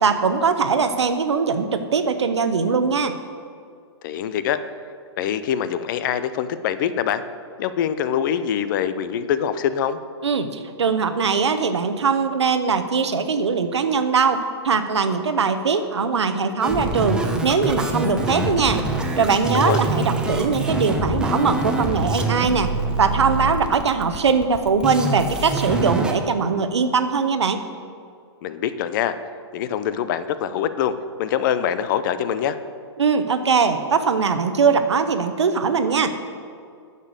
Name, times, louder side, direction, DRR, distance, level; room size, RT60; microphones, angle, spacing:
voice 1, 0.0-3.2 10.2-18.8 19.2-22.7 23.0-27.6 33.0-36.1, right 5 dB, 85° right, 9 dB, 1.0 m, -21 dB
voice 2, 4.0-4.6 5.2-7.2 7.6-10.0 19.5-19.8 28.4-29.1 29.5-32.6, left 9 dB, 45° left, 12 dB, 0.7 m, -24 dB
sound 1, 16.6-26.1, right 1 dB, 5° right, 0.9 m, -25 dB
9.6 x 6.8 x 6.6 m, 2.3 s
hypercardioid pair, 125°, 14 cm